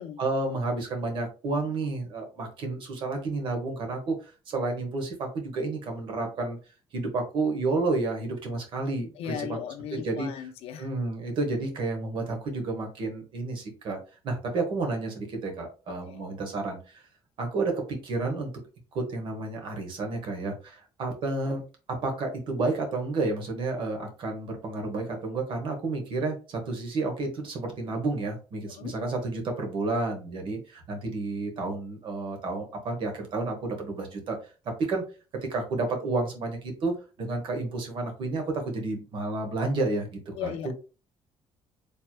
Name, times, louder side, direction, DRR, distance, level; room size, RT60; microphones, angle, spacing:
voice 1, 0.0-6.6 6.9-9.6 9.9-10.3 10.8-14.0 14.2-17.0 17.4-18.5 18.9-21.6 21.9-34.5 34.8-35.0 35.4-40.7, right 3 dB, 50° right, 1.3 m, -31 dB
voice 2, 9.2-10.9 16.1-16.2 28.7-29.0 40.3-40.7, left 10 dB, 70° left, 0.6 m, -37 dB
4.5 x 3.3 x 2.2 m
cardioid pair, 175°, 11 cm